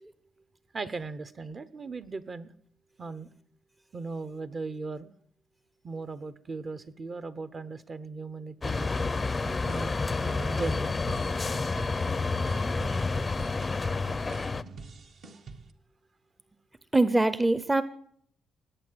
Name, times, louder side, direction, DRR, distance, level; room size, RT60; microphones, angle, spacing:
voice 1, 0.7-2.5 3.0-3.3 3.9-5.1 5.8-8.9 9.6-10.9, right 3 dB, 35° right, 14 dB, 1.0 m, -38 dB
sound 1, 8.6-14.6, left 3 dB, 25° left, 0.7 m, -29 dB
sound 2, 8.9-15.7, right 4 dB, 60° right, 1.6 m, -46 dB
voice 2, 16.9-17.8, right 2 dB, 15° right, 14 dB, 0.8 m, -23 dB
19.0 x 8.5 x 8.0 m, 0.63 s
cardioid pair, 90°, 0 cm